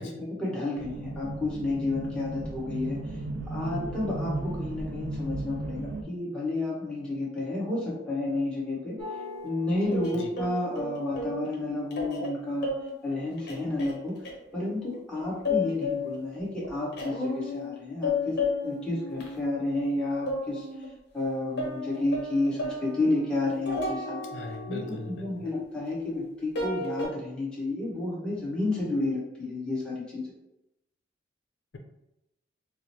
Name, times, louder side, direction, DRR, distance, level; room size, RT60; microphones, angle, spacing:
voice 1, 0.0-3.0 3.5-9.0 9.4-12.7 13.0-14.1 14.5-18.3 18.6-20.6 21.1-24.2 24.7-24.9 25.2-30.2, left 2 dB, 5° left, -7 dB, 1.2 m, -31 dB
sound 1, 0.8-6.0, right 2 dB, 65° right, 0.4 m, -35 dB
sound 2, 9.0-11.5 11.9-12.3 12.6-12.9 13.4-14.7 14.9-16.3 16.6-17.8 18.0-20.0 20.3-20.9 21.2-21.3 21.6-26.2 26.6-27.1, left 3 dB, 60° left, 0.9 m, -33 dB
voice 2, 24.3-25.3, left 2 dB, 85° left, 3 dB, 0.5 m, -39 dB
4.7 x 2.0 x 2.9 m, 0.87 s
head